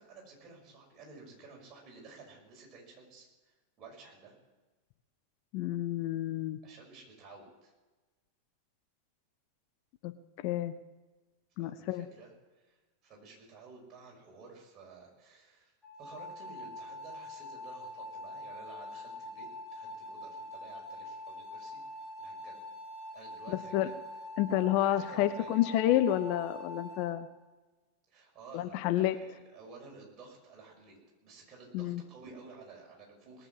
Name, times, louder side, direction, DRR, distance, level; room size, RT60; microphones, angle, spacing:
voice 1, 0.0-4.4 6.6-7.7 11.6-12.8 13.0-15.7 16.0-21.8 22.2-22.6 23.1-24.0 24.9-25.6 28.1-31.0 31.2-33.5, right 4 dB, 30° right, -1 dB, 5.8 m, -53 dB
voice 2, 5.5-6.6 10.0-10.1 10.4-10.7 11.6-12.1 23.5-23.9 24.4-27.3 28.5-29.2 31.7-32.0, left 13 dB, 45° left, 11 dB, 0.7 m, -29 dB
sound 1, 15.8-27.1, left 1 dB, ahead, 6.0 m, -44 dB
20.0 x 7.7 x 7.5 m, 1.2 s
figure-of-eight pair, 90°, 0 cm